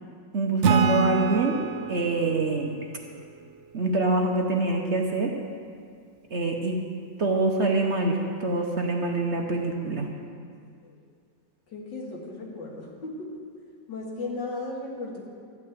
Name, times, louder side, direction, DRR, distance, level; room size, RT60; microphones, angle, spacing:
voice 1, 0.3-1.6 1.9-2.7 3.7-5.3 6.3-6.8 7.2-10.1, right 2 dB, 45° right, 1 dB, 1.1 m, -25 dB
Acoustic guitar / Strum, 0.6-4.1, right 5 dB, 85° right, 0.6 m, -28 dB
voice 2, 11.7-13.4 13.9-15.3, left 2 dB, 80° left, -2 dB, 2.6 m, -36 dB
13.5 x 5.7 x 9.2 m, 2.2 s
omnidirectional pair, 1.9 m